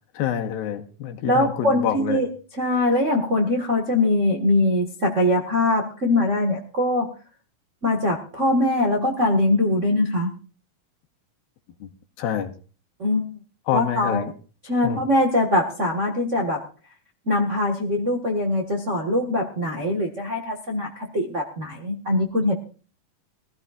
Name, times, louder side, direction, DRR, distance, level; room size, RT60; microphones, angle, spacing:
voice 1, 0.1-2.2 11.8-11.9 12.2-12.5 13.7-14.3 14.8-15.0, left 9 dB, 80° left, 4 dB, 2.9 m, -27 dB
voice 2, 1.3-2.3 2.5-7.1 7.8-10.3 13.0-13.3 13.7-14.2 14.6-16.6 17.3-22.5, left 1 dB, 80° right, -1 dB, 0.6 m, -22 dB
23.0 x 14.5 x 2.4 m, 0.37 s
omnidirectional pair, 4.3 m